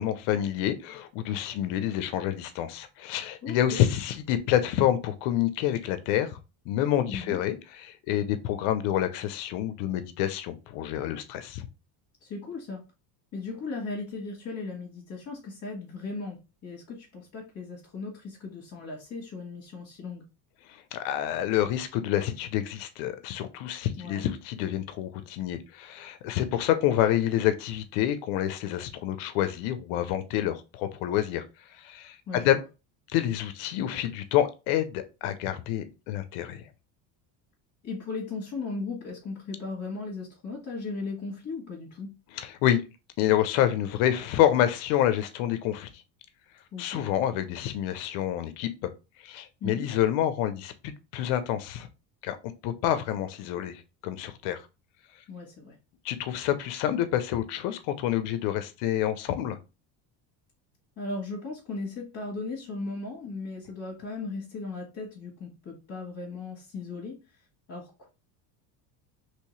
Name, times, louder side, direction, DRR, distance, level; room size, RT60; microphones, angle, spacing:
voice 1, 0.0-6.4 6.7-7.6 7.8-11.7 20.9-31.4 31.8-32.6 33.1-36.6 42.3-42.8 43.2-45.9 46.8-48.7 49.2-51.9 52.2-52.4 52.6-54.6 56.0-59.6, left 11 dB, 75° left, 0.8 m, -28 dB
voice 2, 3.4-3.8 7.1-7.4 12.2-12.8 13.3-20.3 24.0-24.3 32.3-32.6 37.8-42.2 46.7-47.0 49.6-49.9 55.3-55.7 61.0-67.2 67.7-68.1, left 3 dB, 35° left, 1.4 m, -37 dB
3.2 x 2.8 x 3.1 m
supercardioid pair, 110°, 48 cm